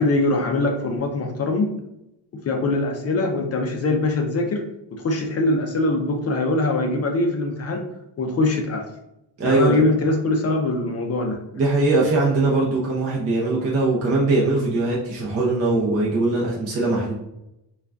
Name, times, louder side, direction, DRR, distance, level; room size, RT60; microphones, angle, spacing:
voice 1, 0.0-1.7 2.4-4.6 4.9-7.9 8.2-8.9 9.4-11.4, left 2 dB, 35° left, 3 dB, 0.4 m, -22 dB
voice 2, 9.4-9.8 11.5-17.1, right 2 dB, 35° right, -4 dB, 0.6 m, -21 dB
3.7 x 2.3 x 3.3 m, 0.86 s
cardioid pair, 170°, 43 cm